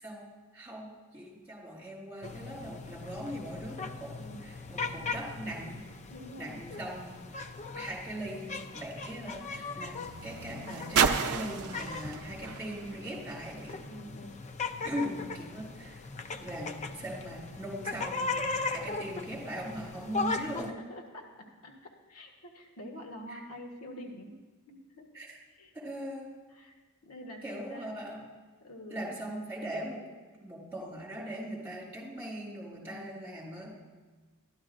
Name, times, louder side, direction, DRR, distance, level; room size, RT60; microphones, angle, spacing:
voice 1, 0.0-4.1 4.4-5.8 6.4-7.2 7.7-13.8 14.8-16.0 16.3-20.7 23.3-23.4 25.1-25.3 25.7-26.3 27.4-28.2 28.9-30.0 30.4-33.8, equal, 10° right, -5 dB, 3.5 m, -40 dB
sound 1, 2.2-20.7, left 3 dB, 30° left, 0.4 m, -39 dB
voice 2, 6.1-6.6 13.8-14.4 20.1-20.2 20.7-21.8 22.1-24.4 24.7-25.1 25.5-25.7 26.5-26.7 27.0-28.0 28.6-29.1 32.8-33.1, equal, 80° left, 1 dB, 1.3 m, -46 dB
sound 2, 7.5-13.9 14.8-14.9, right 6 dB, 80° right, 0.5 m, -34 dB
12.5 x 11.5 x 2.6 m, 1.4 s
head